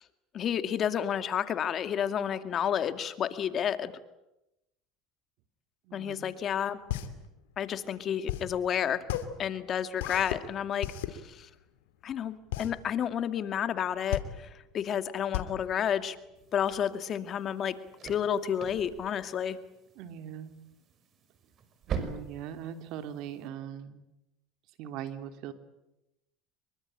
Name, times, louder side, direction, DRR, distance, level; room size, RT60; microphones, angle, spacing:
voice 1, 0.3-3.9 5.9-6.8 7.6-9.0 9.4-10.9 11.3-11.5 12.0-14.2 14.7-16.2 16.5-17.8 18.0-19.6, left 9 dB, 45° left, 11 dB, 2.2 m, -30 dB
voice 2, 5.8-6.3 19.9-20.6 21.9-24.0 24.8-25.5, right 9 dB, 65° right, 9 dB, 3.0 m, -40 dB
sound 1, 6.4-16.8, left 12 dB, 90° left, 2.7 m, -36 dB
sound 2, 16.3-23.5, right 6 dB, 45° right, 5.3 m, -43 dB
26.5 x 23.5 x 9.0 m, 0.90 s
supercardioid pair, 105°, 0 cm